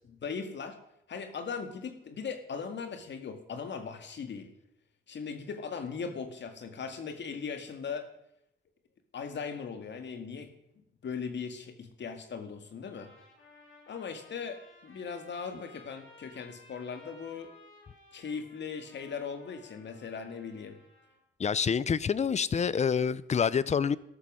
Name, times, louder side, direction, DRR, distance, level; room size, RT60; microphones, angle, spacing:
voice 1, 0.1-0.8 1.1-4.5 5.1-8.1 9.1-10.5 11.0-13.1 13.9-17.5 18.1-20.8, left 5 dB, 60° left, 2.1 m, -39 dB
sound 1, 12.8-21.2, left 2 dB, 85° left, 5.5 m, -57 dB
voice 2, 21.4-24.0, left 6 dB, 35° left, 0.6 m, -27 dB
13.0 x 13.0 x 6.3 m
wide cardioid pair, 135°, 21 cm